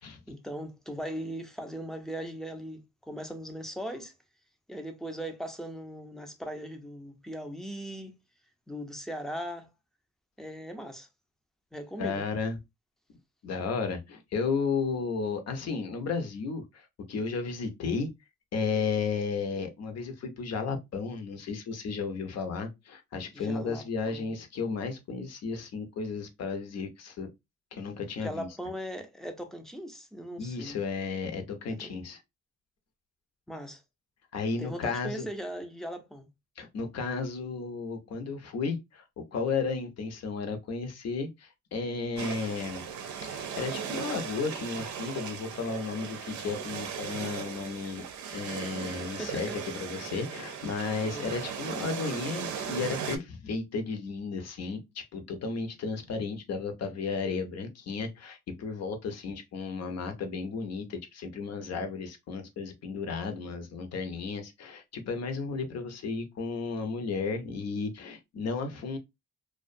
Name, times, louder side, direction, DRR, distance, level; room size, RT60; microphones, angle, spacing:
voice 1, 0.3-4.1 4.7-8.2 8.7-9.7 10.4-11.1 11.7-12.2 23.3-24.3 28.2-30.8 31.8-32.0 33.5-33.8 34.6-36.3 49.1-49.6 51.0-51.3, equal, ahead, 0.5 m, -39 dB
voice 2, 12.0-12.6 13.4-18.1 18.5-27.3 27.7-28.5 30.4-32.2 34.3-35.3 36.6-39.0 39.3-42.8 43.2-48.0 48.3-69.0, left 4 dB, 55° left, 0.7 m, -33 dB
sound 1, 42.2-53.2, right 7 dB, 75° right, 0.5 m, -37 dB
2.3 x 2.1 x 2.5 m
cardioid pair, 90°, 30 cm